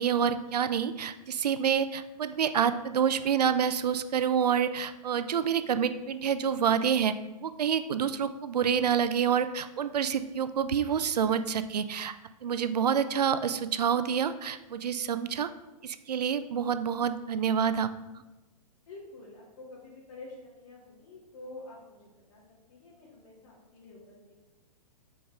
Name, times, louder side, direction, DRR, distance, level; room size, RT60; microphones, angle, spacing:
voice 1, 0.0-7.1 7.4-12.1 12.4-15.5 15.8-17.9, right 7 dB, 85° right, 12 dB, 0.5 m, -27 dB
voice 2, 18.9-22.0 22.3-22.4 22.7-24.3, left 2 dB, 55° left, -5 dB, 2.4 m, -48 dB
7.2 x 4.7 x 3.5 m, 1.1 s
hypercardioid pair, 120°, 20 cm